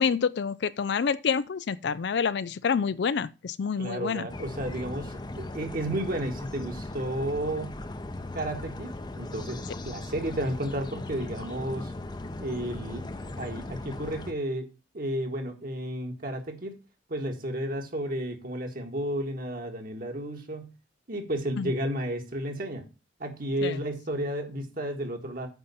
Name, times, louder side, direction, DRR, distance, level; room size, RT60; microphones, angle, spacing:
voice 1, 0.0-4.3 21.6-21.7 23.6-23.8, left 6 dB, 65° left, 0.4 m, -27 dB
voice 2, 3.8-7.8 8.3-11.9 12.4-13.1 13.4-14.7 14.9-16.7 17.1-20.7 21.1-22.9 23.2-25.5, right 1 dB, 50° right, 1.8 m, -32 dB
sound 1, 4.3-14.3, left 2 dB, 25° left, 0.7 m, -38 dB
9.0 x 4.1 x 7.0 m
head